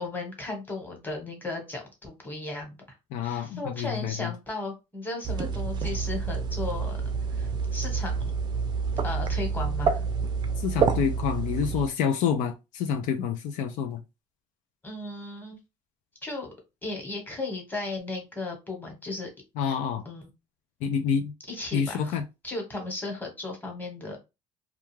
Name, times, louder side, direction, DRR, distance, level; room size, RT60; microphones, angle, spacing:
voice 1, 0.0-2.7 3.2-7.0 7.3-8.3 9.0-10.0 14.8-15.6 16.2-16.5 16.8-19.3 20.0-20.3 21.5-22.2 22.4-24.2, left 2 dB, 15° left, 1.1 m, -35 dB
voice 2, 3.1-4.3 10.6-14.0 19.6-20.0 20.8-21.3 21.7-22.2, left 7 dB, 75° left, 0.4 m, -28 dB
sound 1, 5.2-11.9, right 5 dB, 35° right, 0.4 m, -28 dB
2.3 x 2.3 x 3.1 m
cardioid pair, 120°, 13 cm